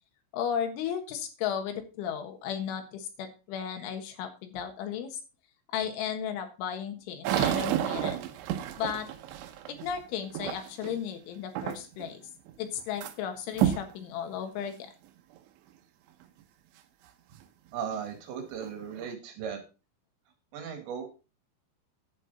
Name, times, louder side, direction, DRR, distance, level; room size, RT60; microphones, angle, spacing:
voice 1, 0.3-5.2 5.7-8.2 8.8-9.1 9.7-12.2 12.6-14.9, left 8 dB, 85° left, 6 dB, 4.0 m, -34 dB
sound 1, 7.2-11.0 11.6-12.1 12.5-13.1 13.5-13.9 14.6-14.7 15.4-15.5 17.9-18.0 18.5-19.1, right 11 dB, 90° right, 3.3 m, -31 dB
voice 2, 17.7-19.6 20.5-21.1, right 7 dB, 70° right, 5 dB, 4.2 m, -37 dB
11.0 x 8.1 x 4.0 m, 0.32 s
omnidirectional pair, 5.4 m